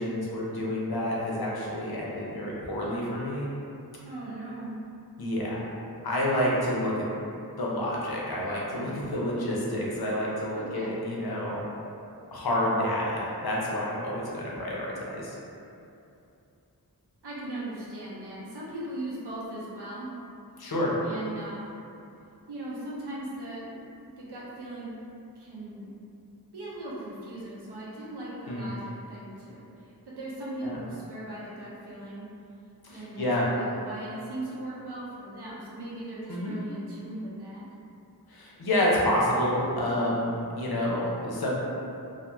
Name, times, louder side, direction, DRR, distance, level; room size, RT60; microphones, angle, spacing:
voice 1, 0.0-3.5 5.2-5.7 6.0-7.1 7.6-11.6 12.3-15.4 20.6-21.0 28.5-28.7 30.6-30.8 32.8-33.4 36.3-36.5 38.3-41.5, left 1 dB, 70° left, -5 dB, 0.6 m, -29 dB
voice 2, 4.0-4.8 10.5-11.0 17.2-20.1 21.0-21.7 22.5-24.9 25.4-25.9 26.5-32.3 32.9-37.6, right 1 dB, 85° right, -7 dB, 0.6 m, -39 dB
2.3 x 2.0 x 2.9 m, 2.7 s
wide cardioid pair, 50°, 39 cm